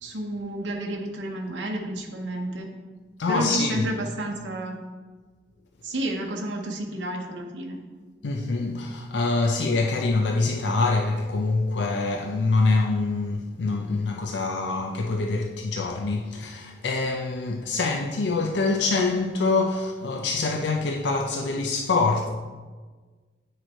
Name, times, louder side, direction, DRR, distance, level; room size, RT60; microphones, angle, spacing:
voice 1, 0.0-2.7 3.3-4.8 5.8-7.8, right 1 dB, 90° right, 0.8 m, -31 dB
voice 2, 3.2-3.9 8.2-22.3, left 3 dB, 75° left, 0.5 m, -25 dB
8.8 x 3.2 x 4.3 m
head